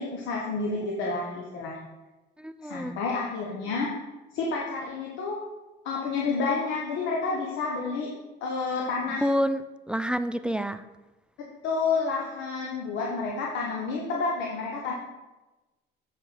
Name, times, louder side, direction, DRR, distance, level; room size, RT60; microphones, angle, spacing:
voice 1, 0.0-1.8 2.6-3.9 4.3-5.4 5.8-8.1 8.4-9.3 11.6-14.9, left 4 dB, 75° left, -1 dB, 1.3 m, -29 dB
voice 2, 2.4-2.9 9.1-9.6 9.9-10.8, equal, 5° right, 11 dB, 0.4 m, -28 dB
7.6 x 5.0 x 5.6 m, 1.1 s
supercardioid pair, 90°, 20 cm